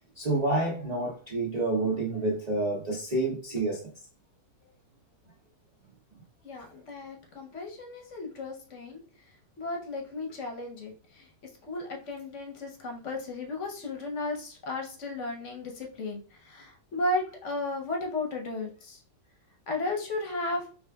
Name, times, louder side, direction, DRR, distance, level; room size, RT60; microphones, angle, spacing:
voice 1, 0.2-3.9, right 2 dB, 45° right, -4 dB, 0.5 m, -28 dB
voice 2, 6.4-9.0 9.6-11.3 11.7-19.0 19.7-20.7, left 2 dB, 55° left, 2 dB, 1.0 m, -34 dB
4.8 x 3.1 x 2.2 m, 0.40 s
omnidirectional pair, 1.9 m